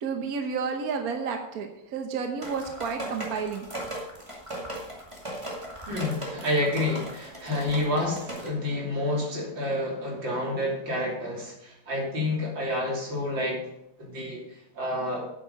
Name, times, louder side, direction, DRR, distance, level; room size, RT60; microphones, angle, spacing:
voice 1, 0.0-3.7, right 5 dB, 55° right, 5 dB, 1.4 m, -31 dB
sound 1, 2.4-8.5, right 1 dB, 15° right, 2.3 m, -38 dB
voice 2, 5.9-13.6 14.0-15.3, left 1 dB, 85° right, -3 dB, 4.0 m, -29 dB
9.5 x 8.3 x 5.3 m, 0.81 s
omnidirectional pair, 2.0 m